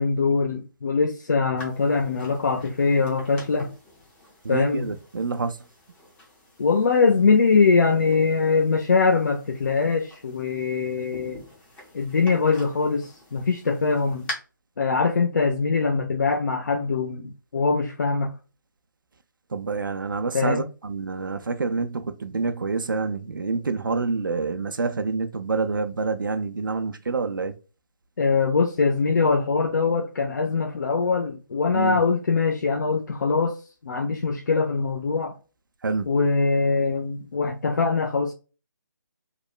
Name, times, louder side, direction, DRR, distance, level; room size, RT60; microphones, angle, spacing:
voice 1, 0.0-3.7 4.5-4.9 6.6-11.4 11.9-14.3 14.8-18.3 20.3-20.7 28.2-33.6 33.8-35.3 36.1-38.3, left 4 dB, 60° left, 0.4 m, -22 dB
sound 1, 1.6-14.3, left 2 dB, 10° left, 0.5 m, -45 dB
voice 2, 4.4-5.5 19.5-27.5 31.7-32.0 35.8-36.1, right 4 dB, 80° right, 0.4 m, -27 dB
3.0 x 2.1 x 2.2 m
figure-of-eight pair, 150°, 11 cm